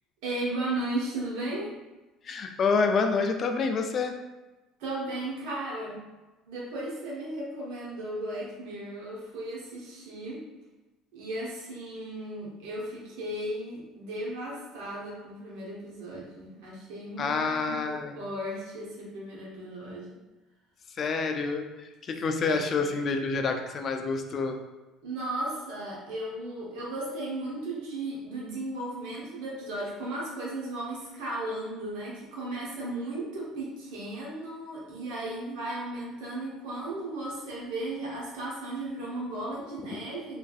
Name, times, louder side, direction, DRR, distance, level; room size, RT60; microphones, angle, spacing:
voice 1, 0.2-1.7 4.8-6.0 6.5-10.4 11.1-20.2 22.5-22.6 25.0-40.4, right 1 dB, 85° right, -4 dB, 1.0 m, -35 dB
voice 2, 2.2-4.2 17.2-18.2 20.9-24.6, left 4 dB, 45° left, 5 dB, 0.3 m, -28 dB
3.1 x 2.5 x 2.3 m, 1.1 s
supercardioid pair, 100°, 0 cm